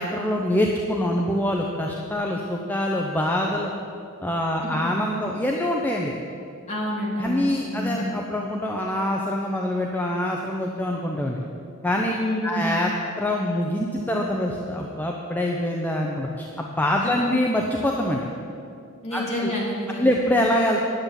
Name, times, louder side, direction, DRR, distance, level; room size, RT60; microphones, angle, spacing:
voice 1, 0.0-3.7 4.2-6.1 7.2-11.4 11.8-12.1 12.4-12.9 13.2-18.2 19.1-19.5 20.0-20.9, left 1 dB, 10° left, -1 dB, 0.7 m, -25 dB
voice 2, 4.6-4.9 6.7-8.1 12.1-12.7 17.0-17.1 19.0-20.1, left 1 dB, 30° left, -5 dB, 3.3 m, -28 dB
10.5 x 7.3 x 9.1 m, 2.4 s
head